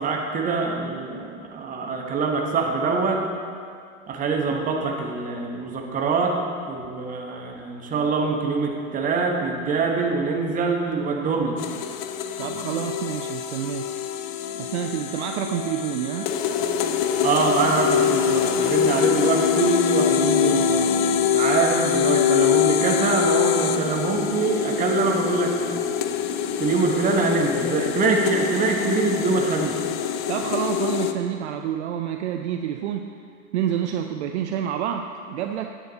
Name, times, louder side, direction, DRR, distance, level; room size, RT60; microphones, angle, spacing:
voice 1, 0.0-3.2 4.1-6.4 6.7-11.6 17.2-25.6 26.6-29.8, right 4 dB, 20° right, 1 dB, 1.1 m, -24 dB
sound 1, 11.6-31.1, left 8 dB, 35° left, 0.5 m, -24 dB
voice 2, 12.4-13.9 14.6-16.4 30.3-33.1 33.5-35.7, right 10 dB, 50° right, 6 dB, 0.5 m, -28 dB
9.9 x 8.2 x 4.0 m, 2.2 s
hypercardioid pair, 115°, 43 cm